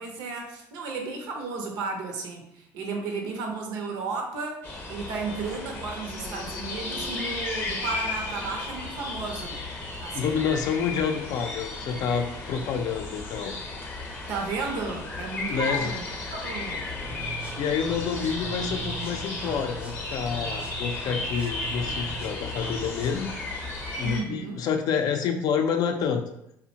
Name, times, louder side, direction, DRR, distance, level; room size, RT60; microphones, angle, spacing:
voice 1, 0.0-9.6 10.0-10.4 14.3-16.8 24.0-24.7, right 4 dB, 80° right, 2 dB, 0.6 m, -34 dB
sound 1, 4.6-24.2, left 3 dB, 25° left, 0.6 m, -34 dB
voice 2, 10.1-13.5 15.5-15.9 17.6-23.3 23.6-26.2, left 7 dB, 65° left, 5 dB, 0.4 m, -28 dB
sound 2, 16.9-23.3, right 6 dB, 15° right, 0.5 m, -41 dB
2.5 x 2.1 x 2.8 m, 0.77 s
supercardioid pair, 90°, 7 cm